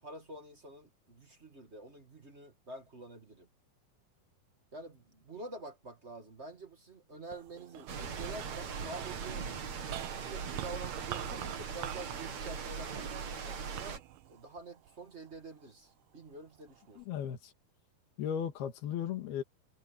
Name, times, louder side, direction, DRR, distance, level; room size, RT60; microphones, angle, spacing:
voice 1, 0.0-3.5 4.7-9.5 10.1-14.0 14.3-17.0, right 2 dB, 30° right, 1.2 m, -48 dB
sound 1, 7.2-15.7 16.3-17.0, right 13 dB, 90° right, 3.0 m, -47 dB
sound 2, 7.9-14.0, right 6 dB, 50° right, 3.3 m, -40 dB
voice 2, 17.0-17.5 18.2-19.4, left 9 dB, 80° left, 4.0 m, -36 dB
omnidirectional pair, 4.4 m